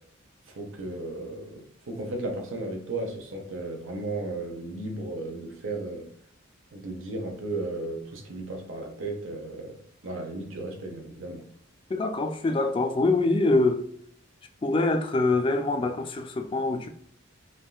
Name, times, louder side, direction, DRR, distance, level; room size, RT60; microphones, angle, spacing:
voice 1, 0.5-6.1 6.7-9.8 10.0-11.4, right 2 dB, 70° right, 0.7 m, -35 dB
voice 2, 11.9-13.8 14.6-16.9, left 2 dB, 25° left, 0.3 m, -24 dB
3.5 x 2.3 x 2.3 m
head